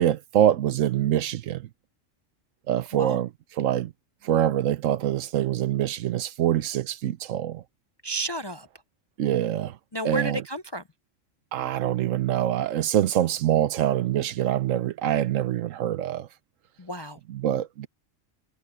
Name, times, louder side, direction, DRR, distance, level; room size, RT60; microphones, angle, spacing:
voice 1, 0.0-1.7 2.7-3.9 4.2-7.6 9.2-9.8 10.0-10.4 11.5-16.3 17.3-17.9, right 11 dB, 85° right, 1.1 m, -25 dB
voice 2, 8.0-8.7 9.9-10.8 16.8-17.2, right 1 dB, 35° left, 0.4 m, -31 dB
omnidirectional pair, 1.3 m